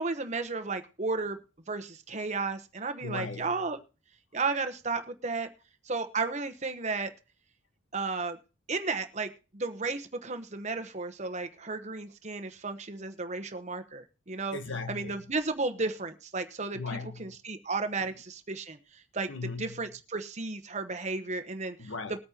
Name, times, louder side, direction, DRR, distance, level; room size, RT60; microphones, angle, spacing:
voice 1, 0.0-1.4 1.7-3.8 4.3-5.5 5.8-7.1 7.9-8.4 8.7-14.6 14.9-16.8 17.2-18.8 19.1-19.3 19.6-21.9, right 3 dB, 35° right, 1.0 m, -33 dB
voice 2, 3.0-3.6 14.5-15.3 16.7-17.4 18.0-18.1 19.3-19.9 21.8-22.2, left 3 dB, 65° left, 1.3 m, -38 dB
21.0 x 8.6 x 2.9 m
head